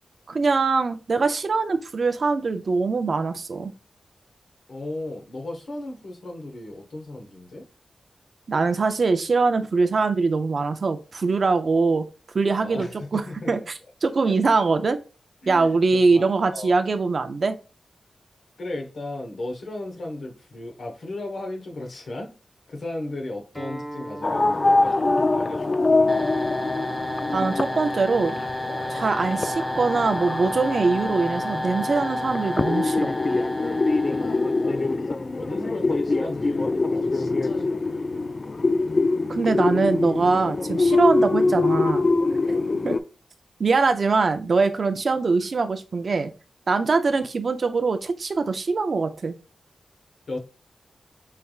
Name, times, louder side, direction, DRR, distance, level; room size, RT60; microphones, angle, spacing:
voice 1, 0.3-3.7 8.5-12.1 12.3-13.6 14.0-15.0 15.5-17.6 27.3-28.4 28.9-33.1 39.3-42.1 42.8-43.0 43.6-46.3 46.7-49.4, right 4 dB, 60° right, 0.5 m, -22 dB
voice 2, 4.7-7.7 12.6-13.7 15.4-15.8 16.1-16.8 18.6-22.3 22.7-26.3 34.2-38.3 42.4-42.7 50.3-50.4, left 2 dB, 70° left, 1.2 m, -36 dB
Acoustic guitar, 23.5-28.7, right 1 dB, 10° right, 1.1 m, -42 dB
sound 1, 24.2-43.0, left 3 dB, 45° left, 0.3 m, -24 dB
sound 2, 26.1-35.0, left 1 dB, 10° left, 0.7 m, -31 dB
5.5 x 3.3 x 2.3 m
wide cardioid pair, 75°, 0 cm